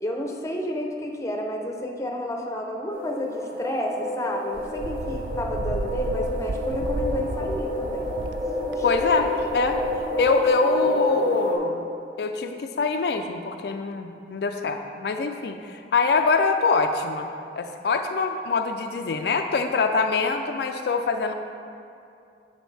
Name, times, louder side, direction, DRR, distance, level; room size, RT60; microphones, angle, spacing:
voice 1, 0.0-8.1 8.8-8.9, equal, 15° left, 1 dB, 0.6 m, -31 dB
sound 1, 2.9-11.6, left 2 dB, 45° right, 1.5 m, -29 dB
Wind, 4.5-10.5, right 3 dB, 80° right, 0.4 m, -34 dB
voice 2, 8.8-9.8 10.2-11.8 12.2-17.3 17.6-21.3, left 4 dB, 65° left, 5 dB, 0.4 m, -24 dB
9.2 x 7.0 x 3.3 m, 2.5 s
head